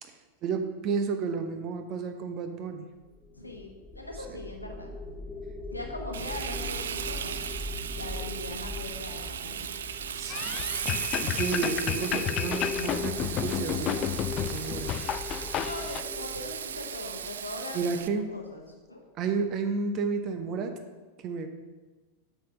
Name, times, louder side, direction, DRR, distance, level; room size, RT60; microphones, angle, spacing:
voice 1, 0.0-2.8 4.3-4.4 10.2-10.6 11.2-14.0 14.3-14.9 17.7-18.3 19.2-20.8 21.2-21.5, right 5 dB, 35° right, 7 dB, 0.8 m, -32 dB
sound 1, 3.1-18.3, left 3 dB, 5° left, 0.6 m, -41 dB
voice 2, 3.3-4.9 5.7-7.4 7.9-9.9 15.6-19.0, left 2 dB, 85° left, 2 dB, 1.3 m, -41 dB
Frying (food), 6.1-18.1, right 8 dB, 65° right, 0.4 m, -36 dB
sound 2, 10.3-16.0, left 11 dB, 35° left, 0.3 m, -32 dB
7.8 x 5.0 x 5.7 m, 1.3 s
figure-of-eight pair, 90°, 0 cm